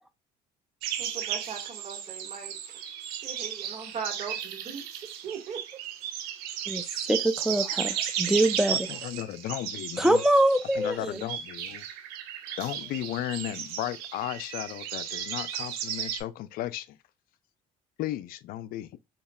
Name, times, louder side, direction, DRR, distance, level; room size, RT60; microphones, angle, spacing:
sound 1, 0.8-16.2, right 9 dB, 85° right, 0.7 m, -35 dB
voice 1, 1.0-2.8 3.2-4.8 5.2-5.6, right 6 dB, 45° right, 1.7 m, -39 dB
voice 2, 6.7-8.9 10.0-11.2, right 1 dB, 5° right, 0.6 m, -24 dB
voice 3, 8.7-10.2 10.7-11.8 12.6-17.0 18.0-18.9, left 13 dB, 65° left, 0.4 m, -35 dB
4.0 x 2.9 x 2.2 m
supercardioid pair, 70°, 16 cm